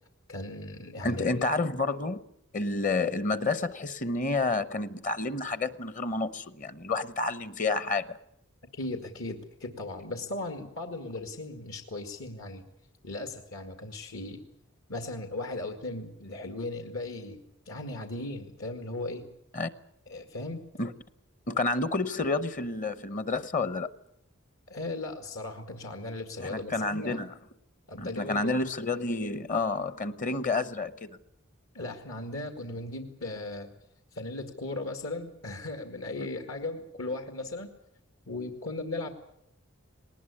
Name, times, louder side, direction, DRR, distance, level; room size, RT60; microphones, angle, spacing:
voice 1, 0.3-1.5 8.7-12.6 13.0-14.4 14.9-19.3 20.1-20.7 24.7-27.2 27.9-28.6 31.7-33.7 34.1-37.7 38.3-39.1, left 2 dB, 75° left, 2.1 m, -37 dB
voice 2, 1.0-2.2 2.5-8.2 19.5-19.7 20.8-20.9 21.5-23.9 26.4-27.3 28.0-31.2 36.2-36.3, left 3 dB, 40° left, 0.8 m, -29 dB
19.5 x 19.0 x 9.8 m
head